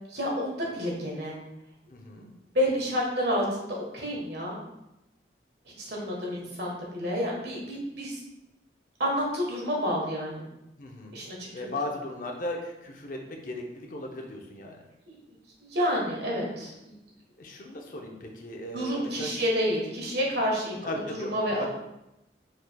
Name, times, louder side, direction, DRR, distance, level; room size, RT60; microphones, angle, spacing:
voice 1, 0.1-1.3 2.5-4.6 5.7-8.2 9.0-10.5 11.1-11.4 15.1-15.2 15.6-16.9 18.7-20.9 21.3-21.7, equal, 65° right, -2 dB, 1.3 m, -29 dB
voice 2, 1.9-2.3 6.3-6.5 10.8-11.2 11.5-14.8 17.4-19.5 20.8-21.7, left 1 dB, 45° left, 2 dB, 0.6 m, -37 dB
4.8 x 4.6 x 2.3 m, 0.89 s
head